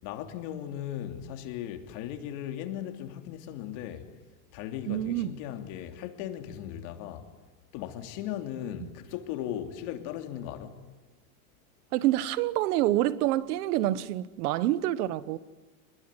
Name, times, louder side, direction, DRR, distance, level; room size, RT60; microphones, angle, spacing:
voice 1, 0.0-4.1 4.5-7.3 7.7-10.8, left 11 dB, 60° left, 3.2 m, -37 dB
voice 2, 4.9-5.3 8.8-8.9 11.9-15.4, right 14 dB, 80° right, 1.4 m, -27 dB
28.0 x 21.0 x 9.8 m
supercardioid pair, 135°, 45 cm